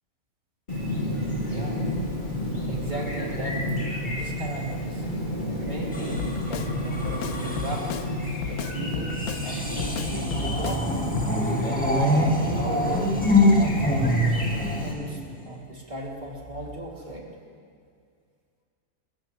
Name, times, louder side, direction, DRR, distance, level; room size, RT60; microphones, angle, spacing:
Chirp tweet, 0.7-14.9, left 1 dB, 30° left, 2.8 m, -30 dB
voice 1, 1.4-1.8 2.7-3.6 4.1-5.0 5.6-8.1 8.5-10.9 11.6-14.2 14.6-17.3, right 1 dB, 30° right, -3 dB, 2.7 m, -36 dB
sound 1, 5.9-8.0 9.1-15.5 16.4-16.7, left 1 dB, 5° left, 1.3 m, -25 dB
Drum kit, 6.2-6.7 7.0-8.1 8.4-9.5 9.8-10.8 11.2-11.3, left 11 dB, 75° left, 1.0 m, -35 dB
25.5 x 15.0 x 3.1 m, 2.2 s
omnidirectional pair, 1.6 m